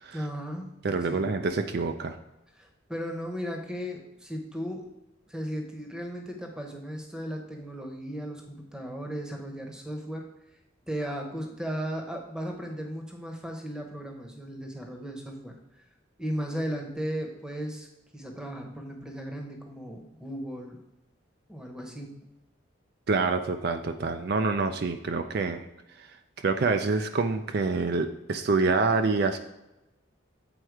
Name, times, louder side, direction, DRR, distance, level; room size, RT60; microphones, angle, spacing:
voice 1, 0.1-0.7 1.1-1.3 2.5-4.9 5.3-10.3 10.9-15.8 16.2-17.9 18.1-20.8 21.5-22.2, equal, 5° right, 3 dB, 0.9 m, -36 dB
voice 2, 0.8-2.2 23.1-25.6 26.0-26.1 26.4-29.4, right 4 dB, 50° right, 7 dB, 0.4 m, -26 dB
7.9 x 4.4 x 4.7 m, 0.95 s
head